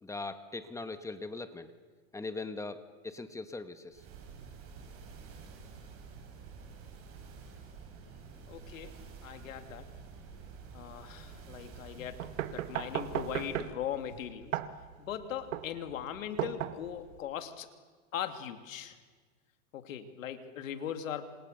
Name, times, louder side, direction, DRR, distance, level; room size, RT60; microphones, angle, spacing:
voice 1, 0.0-1.7 2.1-4.0, left 3 dB, 10° left, 10 dB, 1.3 m, -40 dB
sound 1, 3.9-13.7, right 5 dB, 35° right, 6.3 m, -49 dB
voice 2, 8.5-10.0 10.7-14.6 15.0-17.7 18.1-19.0 19.7-21.3, left 9 dB, 85° left, 8 dB, 2.9 m, -40 dB
sound 2, 12.2-17.2, right 11 dB, 75° right, 1.7 m, -37 dB
27.5 x 27.5 x 6.8 m, 1.5 s
supercardioid pair, 140°, 39 cm